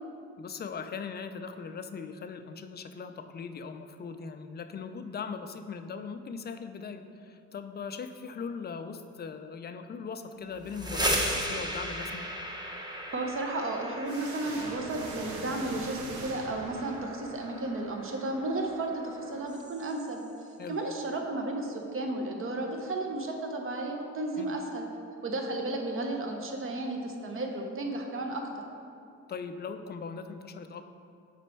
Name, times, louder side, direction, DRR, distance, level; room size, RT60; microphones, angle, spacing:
voice 1, 0.4-12.3 20.6-20.8 24.4-24.6 29.3-30.8, left 5 dB, 35° left, 8 dB, 0.4 m, -39 dB
sound 1, 10.5-20.3, equal, 15° right, 0.8 m, -37 dB
voice 2, 13.1-20.2 20.7-24.8 25.2-28.4, right 2 dB, 45° right, 2 dB, 0.9 m, -33 dB
sound 2, 14.1-17.4, right 3 dB, 80° right, 0.9 m, -42 dB
6.0 x 4.3 x 4.5 m, 2.5 s
cardioid pair, 90°, 30 cm